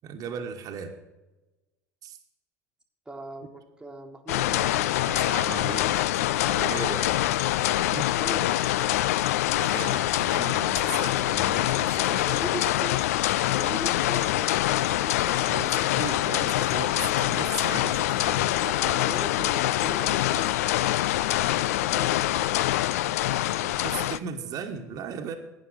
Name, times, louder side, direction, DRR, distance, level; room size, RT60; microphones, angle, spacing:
voice 1, 0.0-1.0 2.0-2.2 5.0-6.0 6.5-7.2 7.7-8.1 9.6-12.2 15.5-18.5 23.6-25.3, right 6 dB, 40° right, 4 dB, 1.3 m, -37 dB
voice 2, 3.1-4.9 8.1-9.0 12.1-13.0 13.5-14.5 14.8-15.9 18.6-22.4, right 2 dB, 5° right, 2 dB, 1.5 m, -40 dB
sound 1, 4.3-24.2, left 15 dB, 60° left, 0.4 m, -25 dB
12.0 x 9.0 x 6.4 m, 1.1 s
figure-of-eight pair, 75°, 9 cm